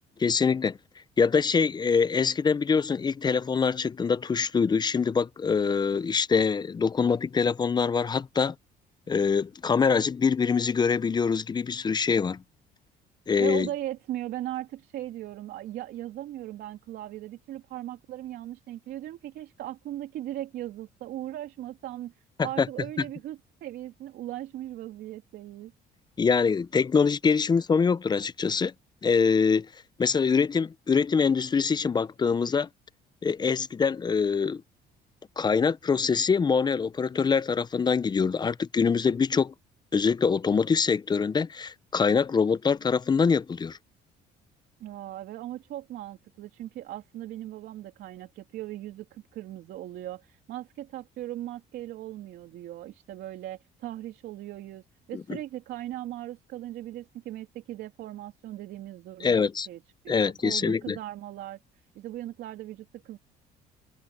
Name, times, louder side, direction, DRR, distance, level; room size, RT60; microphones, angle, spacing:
voice 1, 0.2-0.8 1.2-8.5 9.1-12.4 13.3-13.7 22.6-22.7 26.2-28.7 29.0-29.7 30.0-32.7 33.2-34.6 35.4-39.5 39.9-43.8 55.1-55.4 59.2-59.7 60.1-61.0, left 5 dB, 25° left, 0.6 m, -24 dB
voice 2, 13.4-22.1 22.4-25.7 44.8-54.8 55.1-61.6 61.9-63.2, right 13 dB, 75° right, 3.3 m, -38 dB
cardioid pair, 110°, 17 cm